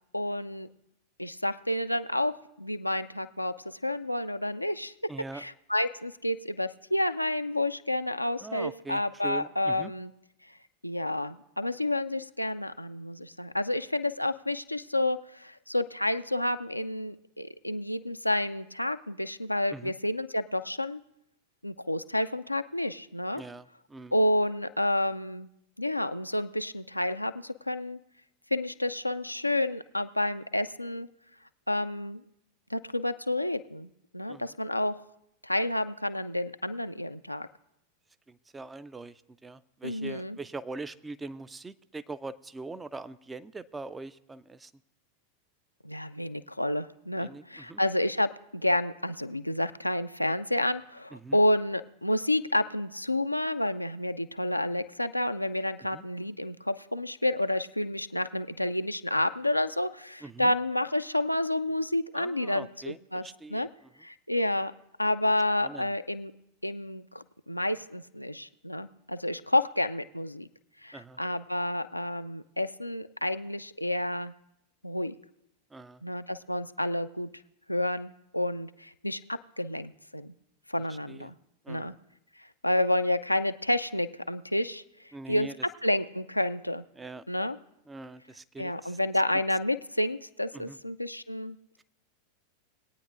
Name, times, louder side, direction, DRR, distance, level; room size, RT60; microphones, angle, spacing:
voice 1, 0.1-0.7 1.2-3.5 3.8-4.9 5.3-10.1 10.8-21.0 21.6-23.4 24.1-25.5 25.8-28.0 28.5-31.1 31.7-32.2 32.7-35.0 35.4-37.5 39.8-40.4 45.8-63.2 63.5-63.7 64.0-64.7 65.0-66.3 66.6-70.5 70.8-74.3 74.8-75.1 76.0-77.3 77.7-80.3 80.7-81.4 81.7-81.9 82.6-84.8 85.3-85.5 85.8-86.8 87.3-87.6 88.6-91.6, left 1 dB, 85° left, 10 dB, 0.4 m, -30 dB
voice 2, 5.1-5.4 8.4-9.9 19.7-19.9 23.3-24.1 34.3-34.5 38.3-44.7 47.2-47.8 51.1-51.4 55.9-56.0 60.2-60.5 62.1-63.7 65.6-65.9 70.9-71.2 75.7-76.0 80.9-81.3 81.6-81.9 85.1-85.5 87.0-87.2 87.9-89.0 90.5-90.8, right 3 dB, 10° right, 14 dB, 0.4 m, -42 dB
21.5 x 9.0 x 2.5 m, 0.83 s
figure-of-eight pair, 90°, 0 cm